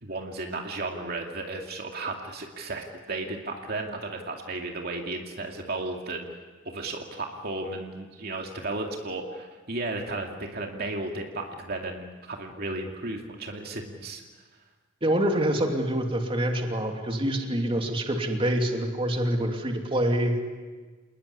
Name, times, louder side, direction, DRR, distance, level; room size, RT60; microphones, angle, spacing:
voice 1, 0.0-6.4 6.6-14.2, right 2 dB, 55° right, 2 dB, 2.5 m, -34 dB
voice 2, 15.0-20.5, right 1 dB, 30° right, 3 dB, 2.9 m, -26 dB
28.5 x 20.0 x 9.9 m, 1.4 s
head